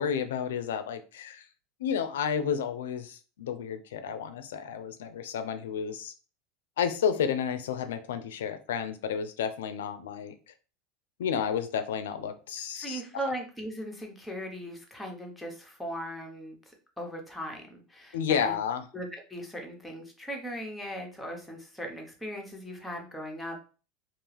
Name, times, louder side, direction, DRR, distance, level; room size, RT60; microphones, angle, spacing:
voice 1, 0.0-1.4 1.8-6.1 6.8-10.3 11.2-13.0 18.1-18.9, left 7 dB, 90° left, 11 dB, 0.4 m, -31 dB
voice 2, 12.8-18.6 18.9-23.6, equal, 5° left, 1 dB, 0.8 m, -38 dB
2.4 x 2.3 x 3.2 m, 0.36 s
supercardioid pair, 115°, 0 cm